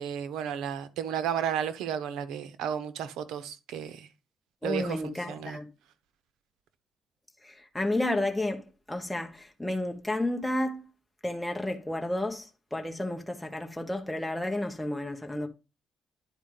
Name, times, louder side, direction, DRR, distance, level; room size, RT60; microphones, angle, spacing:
voice 1, 0.0-4.1 4.6-5.0 5.3-5.6, right 9 dB, 90° right, 0.8 m, -33 dB
voice 2, 4.6-5.7 7.4-10.8 11.2-15.5, left 1 dB, 5° left, 1.1 m, -31 dB
10.0 x 4.5 x 3.8 m
cardioid pair, 90°, 0 cm